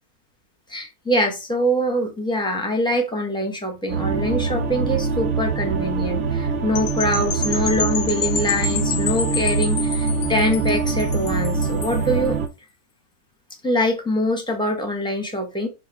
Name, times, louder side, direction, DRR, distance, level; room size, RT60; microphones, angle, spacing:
voice 1, 0.7-12.4 13.6-15.7, equal, 5° left, 0.7 m, -24 dB
sound 1, 3.9-12.5, right 4 dB, 65° right, 0.9 m, -24 dB
sound 2, 6.7-12.0, left 7 dB, 65° left, 0.8 m, -29 dB
3.8 x 2.7 x 4.5 m
omnidirectional pair, 1.6 m